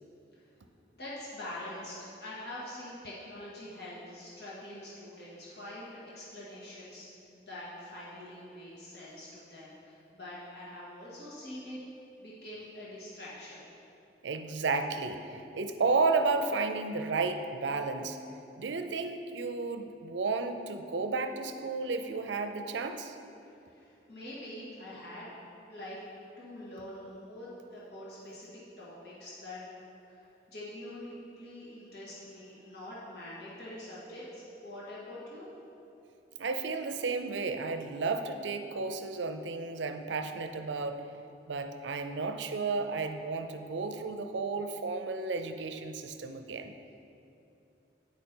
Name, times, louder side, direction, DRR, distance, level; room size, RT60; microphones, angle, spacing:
voice 1, 1.0-7.1 7.4-11.8 12.2-13.6 23.7-25.3 25.7-26.0 26.4-29.6 30.1-35.5, left 1 dB, 65° left, -8 dB, 1.8 m, -45 dB
voice 2, 14.2-18.2 18.6-23.2 36.4-41.0 41.5-46.8, right 4 dB, 80° right, 8 dB, 0.5 m, -32 dB
9.1 x 5.2 x 4.4 m, 2.8 s
head